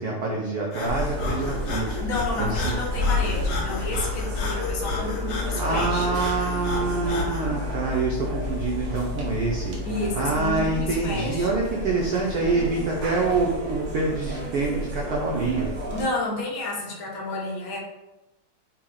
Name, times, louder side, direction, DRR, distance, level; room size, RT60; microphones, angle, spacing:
voice 1, 0.0-1.9 2.4-2.8 4.9-5.3 5.6-9.8 10.2-15.7, right 3 dB, 85° right, -2 dB, 0.8 m, -26 dB
Breathing, 0.7-7.5, left 2 dB, 85° left, 1.5 m, -33 dB
sound 1, 0.9-16.0, left 2 dB, 55° right, 0.8 m, -30 dB
voice 2, 2.0-6.1 9.8-11.5 15.9-17.8, left 2 dB, 60° left, -1 dB, 0.9 m, -30 dB
4.4 x 2.0 x 3.7 m, 1.0 s
omnidirectional pair, 2.3 m